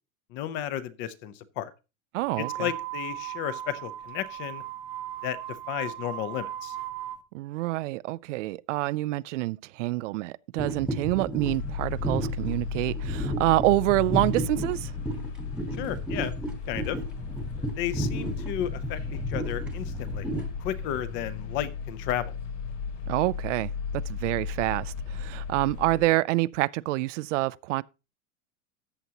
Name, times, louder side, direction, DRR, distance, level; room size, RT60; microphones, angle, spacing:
voice 1, 0.3-1.7 2.4-4.6 5.2-6.8 15.7-16.3 16.7-17.0 17.7-20.3 20.6-22.4, left 11 dB, 30° left, 0.6 m, -33 dB
voice 2, 2.1-2.7 7.3-14.9 23.1-27.8, right 19 dB, 75° right, 0.5 m, -27 dB
sound 1, 2.2-7.2, right 13 dB, 50° right, 0.9 m, -37 dB
sound 2, 10.6-20.5, right 1 dB, 5° right, 1.1 m, -33 dB
sound 3, 11.4-26.0, left 5 dB, 85° left, 3.6 m, -35 dB
14.0 x 8.3 x 2.8 m
supercardioid pair, 165°, 36 cm